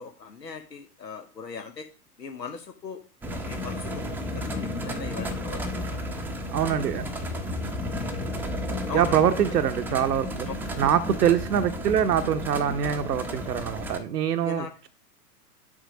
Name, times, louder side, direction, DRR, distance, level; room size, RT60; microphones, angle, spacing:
voice 1, 0.0-1.9 2.2-3.0 3.3-4.0 4.3-6.0 8.9-9.1 10.5-10.6 14.4-14.9, left 5 dB, 90° left, 5 dB, 0.9 m, -39 dB
sound 1, 3.2-14.0, left 1 dB, 5° right, 0.6 m, -33 dB
voice 2, 6.5-7.0 8.9-10.5 10.8-14.9, right 9 dB, 75° right, 8 dB, 0.7 m, -24 dB
7.3 x 5.0 x 5.0 m, 0.36 s
figure-of-eight pair, 105°, 48 cm